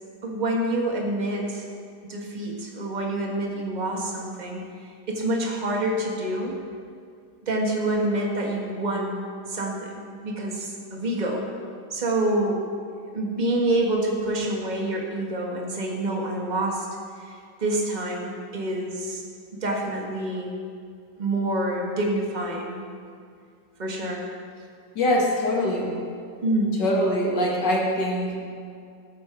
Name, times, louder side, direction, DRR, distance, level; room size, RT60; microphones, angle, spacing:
voice 1, 0.2-1.6 2.0-4.6 5.1-6.6 7.4-9.2 9.5-11.5 11.9-12.6 13.1-16.9 17.2-19.2 19.5-20.5 21.2-22.8 23.8-24.2 26.4-26.8, right 1 dB, 25° right, 0 dB, 1.6 m, -27 dB
voice 2, 24.9-25.9 26.8-28.4, left 1 dB, 80° left, -2 dB, 2.8 m, -23 dB
19.0 x 7.7 x 4.7 m, 2.3 s
omnidirectional pair, 1.9 m